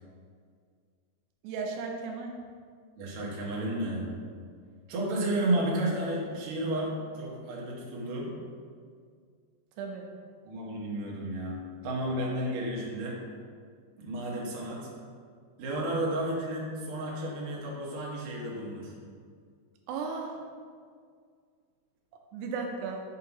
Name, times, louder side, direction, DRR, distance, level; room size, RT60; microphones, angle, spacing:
voice 1, 1.4-2.3 9.8-10.1 19.9-20.4 22.3-23.0, right 4 dB, 85° right, 1 dB, 2.7 m, -35 dB
voice 2, 3.0-4.2 4.9-8.3 10.4-13.2 14.0-14.9 15.6-18.9, right 1 dB, 70° right, -4 dB, 2.3 m, -32 dB
7.0 x 2.7 x 5.4 m, 2.1 s
omnidirectional pair, 4.7 m